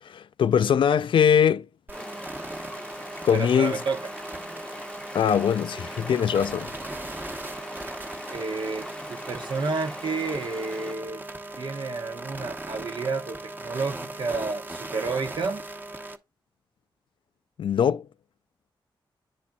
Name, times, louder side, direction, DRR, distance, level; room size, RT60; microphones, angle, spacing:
voice 1, 0.0-1.7 3.2-3.8 5.1-6.7 17.6-18.1, left 8 dB, 80° left, 0.3 m, -22 dB
Stream, 1.9-11.0, left 1 dB, 10° left, 0.8 m, -41 dB
sound 1, 1.9-16.2, right 2 dB, 20° right, 1.0 m, -39 dB
voice 2, 3.3-4.1 8.3-11.2 11.6-15.6, right 4 dB, 65° right, 1.0 m, -30 dB
10.5 x 4.2 x 2.3 m
cardioid pair, 80°, 9 cm